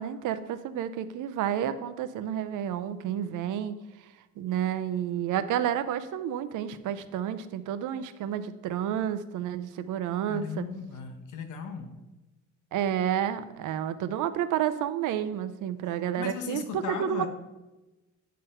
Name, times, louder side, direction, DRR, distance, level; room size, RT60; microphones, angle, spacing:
voice 1, 0.0-3.8 4.4-10.6 12.7-17.3, right 10 dB, 90° right, 12 dB, 0.6 m, -30 dB
voice 2, 10.3-12.0 16.2-17.3, left 7 dB, 80° left, 6 dB, 1.1 m, -36 dB
9.4 x 3.8 x 5.5 m, 1.1 s
cardioid pair, 155°, 30 cm